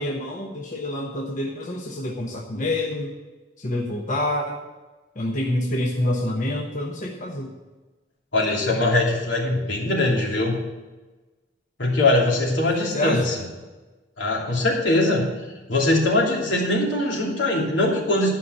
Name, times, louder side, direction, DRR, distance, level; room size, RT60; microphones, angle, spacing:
voice 1, 0.0-3.1 3.6-4.6 5.1-7.5 12.9-13.2, left 1 dB, 45° left, 0 dB, 1.1 m, -27 dB
voice 2, 8.3-10.5 11.8-13.3 14.2-15.3 15.7-18.3, left 2 dB, 85° left, -2 dB, 2.9 m, -21 dB
11.5 x 5.6 x 8.0 m, 1.2 s
head